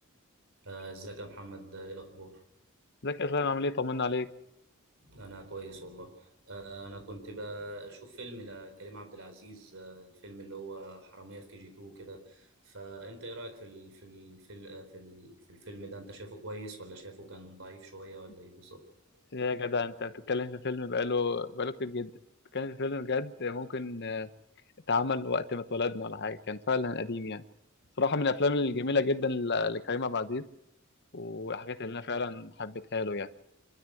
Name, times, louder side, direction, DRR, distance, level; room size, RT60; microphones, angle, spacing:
voice 1, 0.6-2.4 5.0-18.8, right 2 dB, 65° right, 6 dB, 4.1 m, -45 dB
voice 2, 3.0-4.3 19.3-22.1 22.5-24.3 24.9-27.4 28.0-30.4 31.1-33.3, left 3 dB, 55° left, 11 dB, 1.0 m, -31 dB
26.0 x 13.0 x 7.9 m, 0.87 s
head